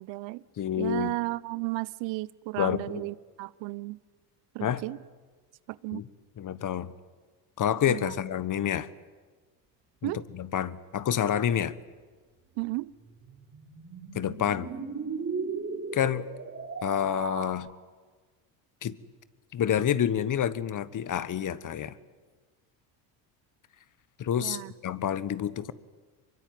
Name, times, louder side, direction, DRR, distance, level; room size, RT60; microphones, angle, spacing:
voice 1, 0.0-0.4 0.8-4.0 4.5-5.0 5.7-6.0 7.9-8.1 10.0-10.2 12.6-12.9 24.4-24.7, right 22 dB, 70° right, 20 dB, 0.8 m, -34 dB
voice 2, 0.6-1.1 2.6-3.0 4.6-4.8 5.9-6.1 6.4-6.9 7.6-8.9 10.0-10.1 10.4-11.7 14.1-14.7 15.9-16.3 16.8-17.7 18.8-18.9 19.5-21.9 24.2-25.7, left 9 dB, 40° left, 16 dB, 1.3 m, -28 dB
sound 1, 12.6-17.5, right 5 dB, 30° right, 4.7 m, -36 dB
24.0 x 22.5 x 9.3 m, 1.4 s
supercardioid pair, 80°, 45 cm